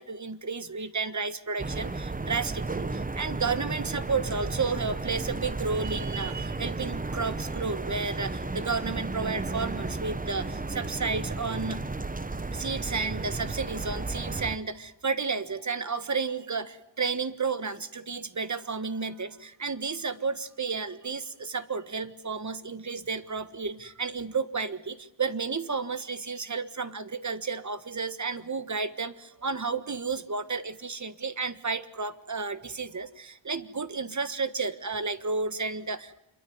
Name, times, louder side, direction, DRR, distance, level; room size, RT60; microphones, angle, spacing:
voice 1, 0.0-11.8 12.5-36.2, right 4 dB, 35° right, 12 dB, 1.5 m, -32 dB
sound 1, 1.6-14.6, right 3 dB, 20° right, 1.0 m, -33 dB
27.0 x 23.0 x 9.5 m, 0.87 s
wide cardioid pair, 115°, 47 cm